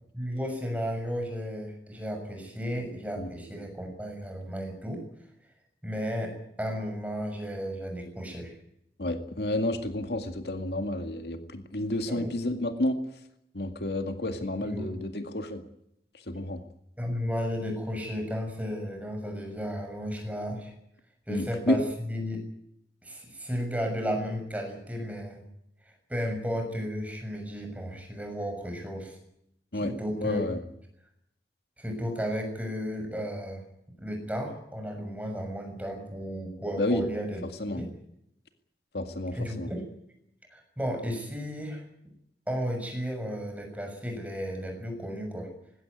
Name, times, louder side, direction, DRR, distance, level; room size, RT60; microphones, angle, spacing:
voice 1, 0.1-5.0 5.8-8.6 12.1-12.3 14.6-14.9 17.0-20.7 21.3-22.4 23.0-25.4 25.8-29.2 29.8-30.4 31.8-33.6 34.0-37.4 37.7-37.9 39.3-39.8 40.5-41.8 42.5-45.5, equal, 10° right, 3 dB, 6.6 m, -34 dB
voice 2, 9.0-13.0 13.5-15.6 16.3-16.6 21.3-21.8 29.7-29.9 30.2-30.6 36.8-37.0 37.6-37.8 38.9-39.7, left 1 dB, 70° left, 7 dB, 2.0 m, -30 dB
20.5 x 17.0 x 9.6 m, 0.77 s
head